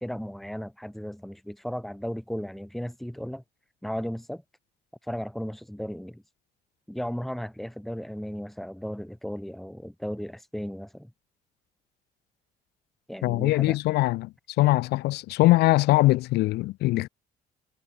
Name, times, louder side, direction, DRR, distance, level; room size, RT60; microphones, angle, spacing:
voice 1, 0.0-3.4 3.8-4.4 5.0-6.2 6.9-11.1 13.1-13.8, equal, ahead, 2.5 m, -35 dB
voice 2, 13.2-17.1, left 19 dB, 75° left, 0.5 m, -22 dB
cardioid pair, 110°, 17 cm